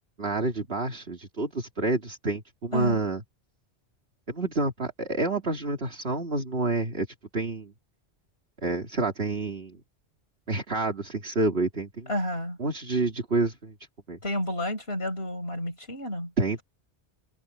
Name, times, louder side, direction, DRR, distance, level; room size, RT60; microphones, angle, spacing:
voice 1, 0.2-3.2 4.3-7.1 7.3-7.7 8.6-9.8 10.5-12.1 12.6-13.7 14.1-14.2 16.4-16.6, right 3 dB, 65° right, 2.9 m, -28 dB
voice 2, 12.1-12.6 14.2-16.3, left 1 dB, 65° left, 6.9 m, -30 dB
omnidirectional pair, 1.1 m